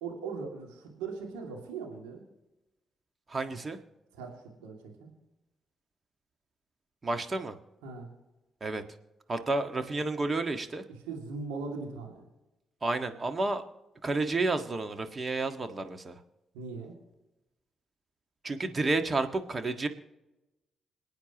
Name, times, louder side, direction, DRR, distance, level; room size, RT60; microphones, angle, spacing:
voice 1, 0.0-2.2 3.5-3.6 4.1-4.3 4.6-5.1 7.8-8.1 10.9-12.2 16.5-17.0, right 4 dB, 85° right, 0 dB, 2.5 m, -39 dB
voice 2, 3.3-3.8 7.0-7.6 8.6-8.8 9.3-10.8 12.8-13.6 14.0-16.2 18.4-19.9, right 2 dB, 35° right, 8 dB, 1.6 m, -30 dB
27.0 x 9.2 x 3.0 m, 1.0 s
hypercardioid pair, 40°, 0 cm